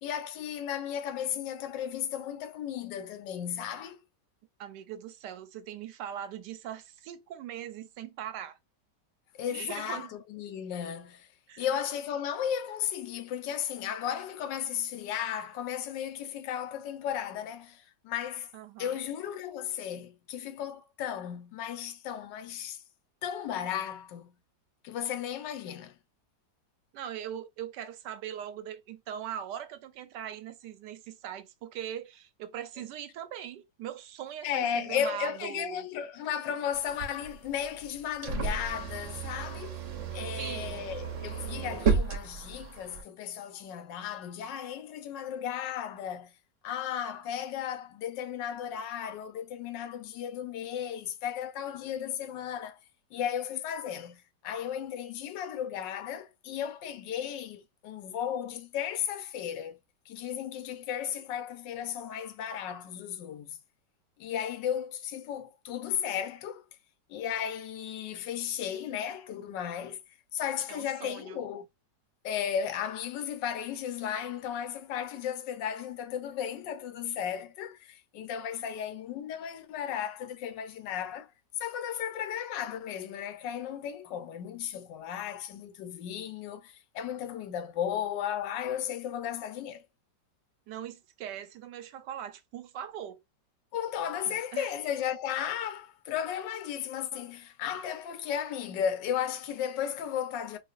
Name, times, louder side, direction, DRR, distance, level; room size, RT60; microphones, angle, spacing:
voice 1, 0.0-4.0 9.4-11.3 11.6-18.5 18.8-22.8 23.2-24.3 24.8-25.9 34.4-39.8 40.1-46.3 46.6-52.8 53.1-59.8 60.1-63.6 64.2-66.6 67.1-70.0 70.3-71.7 72.2-81.3 81.6-89.8 93.7-100.6, left 9 dB, 80° left, 1.3 m, -35 dB
voice 2, 4.6-8.6 9.5-10.1 11.5-11.7 18.5-19.0 26.9-35.9 40.1-40.9 70.7-71.4 90.7-93.2 94.3-94.7, right 10 dB, 75° right, 1.2 m, -41 dB
sound 1, 36.7-43.0, right 5 dB, 55° right, 0.9 m, -33 dB
4.6 x 2.4 x 2.4 m
omnidirectional pair, 1.9 m